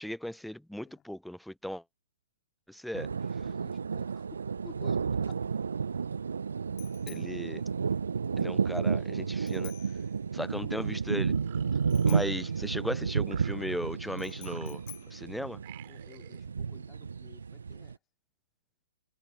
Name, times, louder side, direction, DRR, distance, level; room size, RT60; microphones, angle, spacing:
voice 1, 0.0-1.8 2.7-3.1 7.1-7.6 8.4-9.7 10.3-11.3 12.1-14.8 15.1-15.6, equal, ahead, 0.8 m, -37 dB
voice 2, 0.8-1.1 3.0-5.5 11.7-11.8 14.5-14.7 15.8-18.0, left 10 dB, 20° left, 4.3 m, -54 dB
sound 1, 2.9-17.9, right 6 dB, 70° right, 0.8 m, -32 dB
Bicycle bell, 5.1-16.3, left 21 dB, 40° left, 1.8 m, -54 dB
sound 2, 11.2-12.8 13.2-14.1 14.4-15.2 15.6-16.5, right 18 dB, 40° right, 7.1 m, -53 dB
figure-of-eight pair, 115°, 0 cm